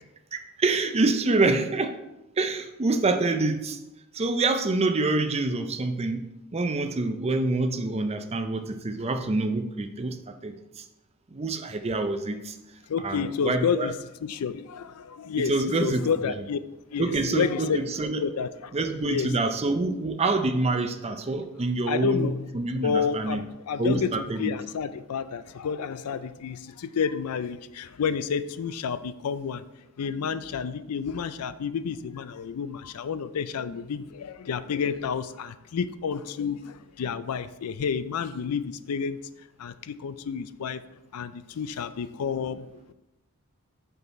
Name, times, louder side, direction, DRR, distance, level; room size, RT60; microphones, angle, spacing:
voice 1, 0.3-2.0 2.4-3.8 4.1-10.8 11.3-12.6 13.0-13.9 15.4-16.1 17.0-18.3 18.7-23.4 23.8-24.5, right 2 dB, 30° right, 0.5 m, -26 dB
voice 2, 12.9-13.9 14.2-15.5 15.8-16.6 16.9-17.9 18.2-18.7 19.0-19.3 21.9-22.4 22.8-24.1 24.4-29.6 30.0-39.2 39.6-40.8 41.1-42.9, left 6 dB, 90° left, 0.4 m, -30 dB
6.0 x 5.5 x 4.1 m
head